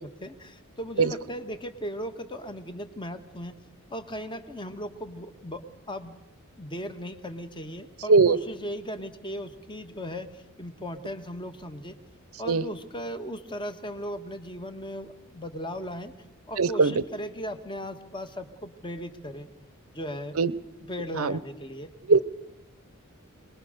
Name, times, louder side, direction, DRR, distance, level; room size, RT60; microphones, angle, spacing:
voice 1, 0.0-3.5 3.9-6.2 6.6-12.0 12.4-16.1 16.5-19.5 19.9-20.3 20.8-21.9, equal, 20° left, 8 dB, 1.6 m, -37 dB
voice 2, 16.6-16.9 20.4-20.5 21.2-21.4 22.1-22.2, right 4 dB, 75° right, 18 dB, 0.8 m, -20 dB
27.0 x 20.5 x 6.8 m, 0.87 s
head